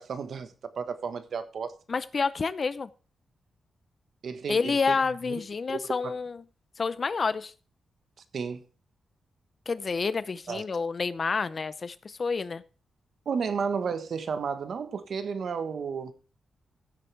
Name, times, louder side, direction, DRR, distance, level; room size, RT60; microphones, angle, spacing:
voice 1, 0.0-1.7 4.2-5.0 5.3-5.4 5.7-6.1 8.3-8.6 10.5-10.6 13.2-16.1, right 6 dB, 60° right, 1.3 m, -32 dB
voice 2, 1.9-2.9 4.5-6.4 6.8-7.5 9.7-12.6, left 4 dB, 40° left, 0.7 m, -29 dB
15.5 x 7.8 x 3.4 m
wide cardioid pair, 125°, 0 cm